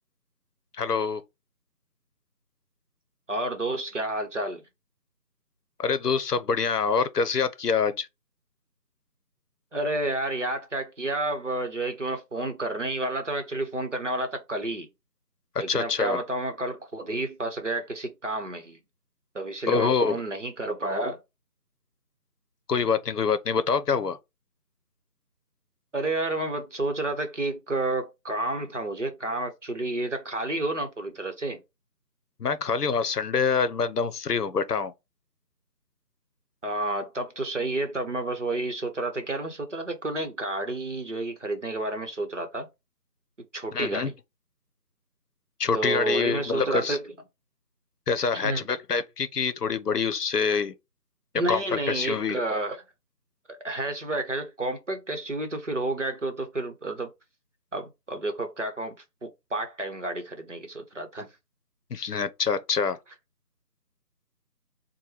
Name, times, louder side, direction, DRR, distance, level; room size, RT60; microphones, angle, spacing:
voice 1, 0.8-1.2 5.8-8.1 15.7-16.2 19.7-20.2 22.7-24.2 32.4-34.9 43.7-44.1 45.6-47.0 48.1-50.7 51.5-52.4 61.9-63.0, left 5 dB, 70° left, 0.7 m, -26 dB
voice 2, 3.3-4.6 9.7-14.9 15.6-18.8 19.3-21.2 25.9-31.6 36.6-42.7 43.5-44.1 45.7-47.1 48.3-48.7 51.3-52.8 53.6-57.1 57.7-58.9 59.2-61.3, right 2 dB, 50° right, 0.9 m, -30 dB
4.2 x 2.2 x 3.2 m
figure-of-eight pair, 175°, 48 cm